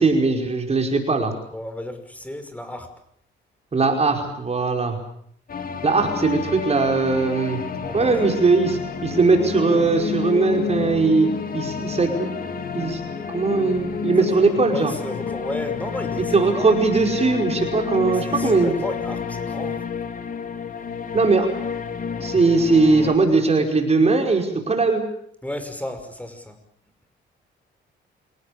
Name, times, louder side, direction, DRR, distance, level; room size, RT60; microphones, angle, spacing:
voice 1, 0.0-1.3 3.7-5.0 5.8-7.6 7.9-11.3 11.5-12.4 12.7-13.0 13.3-14.9 16.3-18.7 21.1-21.5 22.2-25.0, right 3 dB, 30° right, 3 dB, 5.2 m, -20 dB
voice 2, 1.5-2.9 7.8-8.2 14.2-16.8 18.0-19.9 25.4-26.6, left 1 dB, 5° left, 8 dB, 5.8 m, -34 dB
sound 1, 5.5-23.2, left 6 dB, 45° left, 3.2 m, -29 dB
27.5 x 18.0 x 8.5 m, 0.66 s
cardioid pair, 90°, 20 cm